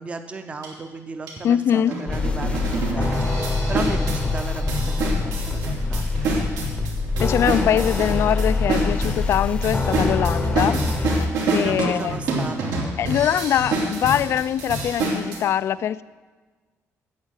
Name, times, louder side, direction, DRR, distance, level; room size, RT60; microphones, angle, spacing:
voice 1, 0.0-6.3 11.5-12.7, right 4 dB, 20° right, 7 dB, 0.7 m, -35 dB
sound 1, 0.6-0.7 1.3-1.4 1.9-15.4, right 2 dB, 90° right, 3.2 m, -27 dB
voice 2, 1.4-2.0 7.2-12.2 13.0-16.0, left 10 dB, 50° left, 16 dB, 0.3 m, -23 dB
sound 2, 2.1-11.3, left 3 dB, 20° left, 0.7 m, -25 dB
9.6 x 8.3 x 8.2 m, 1.4 s
cardioid pair, 175°, 6 cm